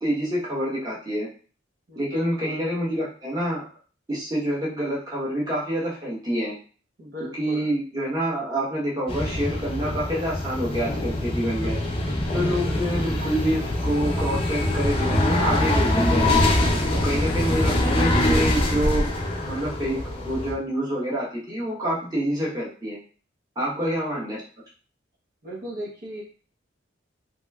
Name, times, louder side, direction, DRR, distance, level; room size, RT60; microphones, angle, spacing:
voice 1, 0.0-1.3 2.0-3.7 4.1-6.5 7.4-11.8 12.3-16.3 17.0-19.0 19.5-20.0 20.2-23.0 23.6-24.4, equal, 20° right, -6 dB, 1.0 m, -27 dB
voice 2, 1.9-2.6 7.0-7.7 12.5-13.1 16.8-17.4 23.6-24.3 25.4-26.2, equal, 50° right, -5 dB, 0.8 m, -38 dB
sound 1, 9.1-20.5, left 1 dB, 30° left, 0.5 m, -24 dB
3.1 x 3.0 x 2.3 m, 0.39 s
head